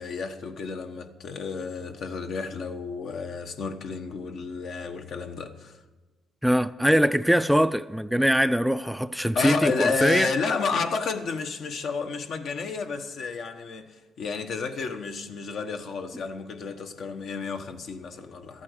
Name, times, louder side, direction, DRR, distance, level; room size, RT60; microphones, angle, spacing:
voice 1, 0.0-5.8 9.3-18.6, left 5 dB, 65° left, 1.1 m, -31 dB
voice 2, 6.4-10.3, equal, ahead, 0.3 m, -22 dB
13.5 x 8.7 x 6.4 m
cardioid pair, 90°, 0 cm